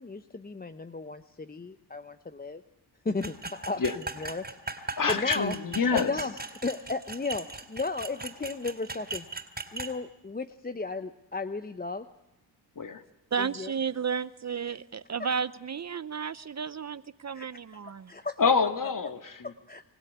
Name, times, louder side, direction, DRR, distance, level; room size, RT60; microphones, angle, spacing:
voice 1, 0.0-2.6 3.0-3.8 4.2-6.3 6.6-9.2 9.7-12.1 13.4-13.7 17.3-17.4 17.7-17.8 18.1-18.4 19.4-19.8, left 3 dB, 20° left, 0.9 m, -35 dB
sound 1, 3.2-9.9, right 3 dB, 20° right, 3.8 m, -38 dB
voice 2, 5.0-6.1 12.8-13.0 18.4-19.5, left 5 dB, 45° left, 2.3 m, -27 dB
voice 3, 13.3-18.1, right 6 dB, 35° right, 0.8 m, -33 dB
26.0 x 16.0 x 9.4 m
cardioid pair, 65°, 44 cm